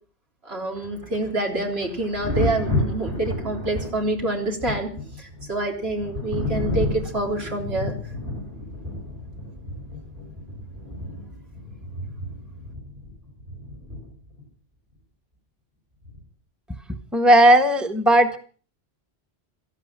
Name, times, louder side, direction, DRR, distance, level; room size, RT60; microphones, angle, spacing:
voice 1, 0.4-4.9 5.2-8.0, right 2 dB, 75° right, 1 dB, 4.0 m, -27 dB
Thunder, 0.8-14.4 16.0-16.3, left 1 dB, 55° right, 5.8 m, -31 dB
voice 2, 17.1-18.4, right 1 dB, ahead, 6 dB, 1.4 m, -16 dB
17.0 x 13.5 x 6.0 m, 0.42 s
omnidirectional pair, 1.1 m